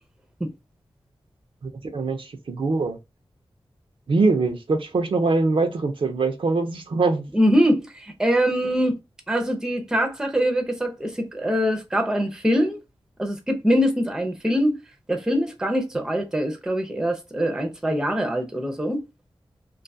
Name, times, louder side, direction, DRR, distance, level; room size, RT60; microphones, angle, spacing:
voice 1, 1.6-3.0 4.1-7.3, right 3 dB, 65° right, 0.6 m, -23 dB
voice 2, 7.3-8.9 9.3-12.8 13.2-14.8 15.1-19.0, equal, 5° right, 0.6 m, -23 dB
2.6 x 2.3 x 2.6 m
wide cardioid pair, 100°, 10 cm